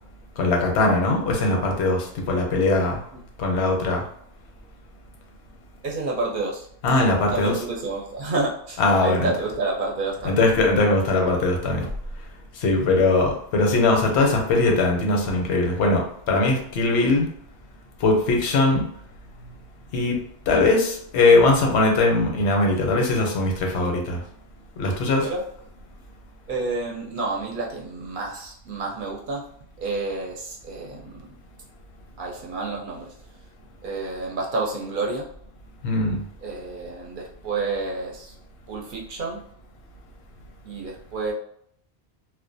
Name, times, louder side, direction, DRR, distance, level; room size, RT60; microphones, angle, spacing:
voice 1, 0.4-3.0 3.4-4.0 6.8-7.6 8.8-9.3 10.2-11.9 12.6-17.3 18.0-18.9 19.9-24.2 24.8-25.3 35.8-36.2, left 2 dB, 85° left, 1 dB, 0.9 m, -20 dB
voice 2, 5.8-6.7 7.3-10.4 25.2-25.4 26.5-29.5 29.8-31.3 32.2-33.1 33.8-35.2 36.4-38.3 38.7-39.4 40.6-41.3, right 3 dB, 60° right, -2 dB, 0.6 m, -29 dB
2.3 x 2.1 x 2.5 m, 0.66 s
omnidirectional pair, 1.1 m